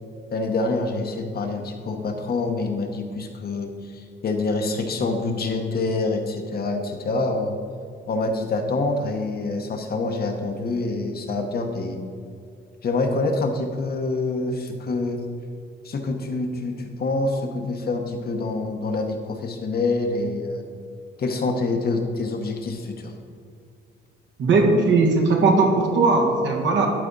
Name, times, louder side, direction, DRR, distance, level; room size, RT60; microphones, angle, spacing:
voice 1, 0.3-7.6 8.1-12.0 12.8-15.2 15.8-20.6 21.2-23.1, left 3 dB, 50° left, 4 dB, 1.1 m, -26 dB
voice 2, 24.4-26.9, right 3 dB, 70° right, 0 dB, 1.7 m, -18 dB
12.0 x 4.2 x 4.0 m, 2.4 s
cardioid pair, 90°, 20 cm